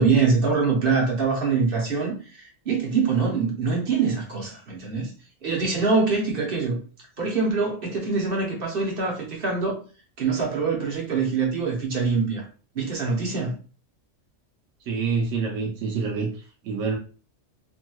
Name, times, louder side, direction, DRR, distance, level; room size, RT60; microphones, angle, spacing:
voice 1, 0.0-5.1 5.4-6.8 7.2-9.8 10.2-12.5 12.7-13.6, right 4 dB, 50° right, 0.9 m, -24 dB
voice 2, 14.9-16.3 16.6-17.0, right 5 dB, 80° right, 1.0 m, -26 dB
3.0 x 2.7 x 2.2 m
omnidirectional pair, 1.3 m